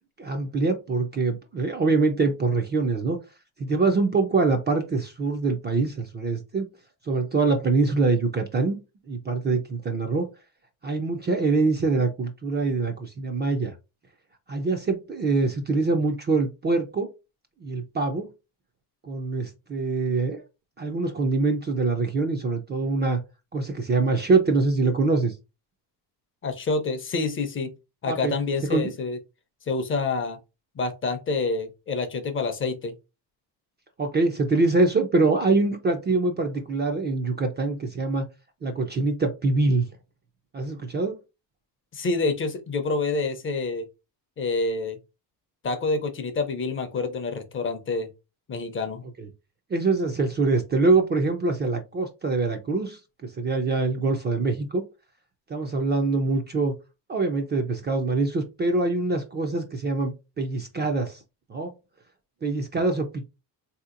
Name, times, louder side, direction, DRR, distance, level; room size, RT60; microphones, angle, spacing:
voice 1, 0.2-3.2 3.6-6.7 7.0-8.8 9.1-10.3 10.8-13.7 14.5-17.1 17.6-18.3 19.0-20.4 20.8-23.2 23.5-25.4 28.1-28.3 28.7-28.9 34.0-38.3 38.6-39.9 40.5-41.2 49.2-49.3 49.7-54.8 55.5-56.7 57.1-61.2 61.5-61.7 62.4-63.2, right 3 dB, 25° right, 0.3 m, -24 dB
voice 2, 26.4-27.7 28.0-29.2 29.7-30.4 30.8-32.9 41.9-43.8 44.4-45.0 45.6-48.1 48.5-49.0, left 3 dB, 30° left, 0.5 m, -27 dB
3.7 x 2.8 x 2.4 m
cardioid pair, 150°, 42 cm